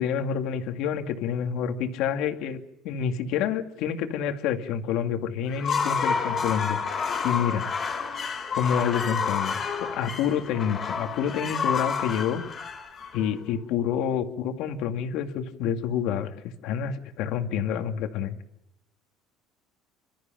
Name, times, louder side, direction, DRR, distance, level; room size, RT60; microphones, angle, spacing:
voice 1, 0.0-2.6 2.8-7.6 8.5-12.4 13.1-16.3 16.6-18.4, left 8 dB, 60° left, 5 dB, 2.3 m, -28 dB
sound 1, 5.5-13.6, left 6 dB, 25° left, 4.0 m, -29 dB
28.5 x 13.5 x 9.2 m, 0.86 s
cardioid pair, 160°, 0 cm